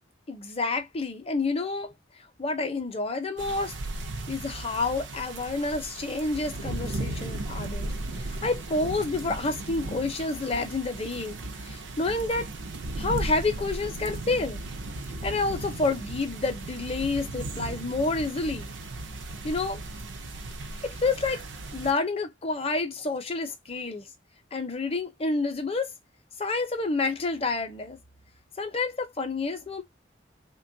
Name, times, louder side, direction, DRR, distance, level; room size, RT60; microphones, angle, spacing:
voice 1, 0.3-1.9 2.4-3.7 4.3-7.9 8.2-12.5 13.0-14.6 15.2-18.7 19.4-19.8 20.8-21.4 21.7-24.1 24.5-25.9 26.4-28.0 28.6-29.8, left 3 dB, 30° left, 0.6 m, -29 dB
sound 1, 3.4-21.9, right 2 dB, 65° right, 0.5 m, -36 dB
3.3 x 2.2 x 2.6 m
head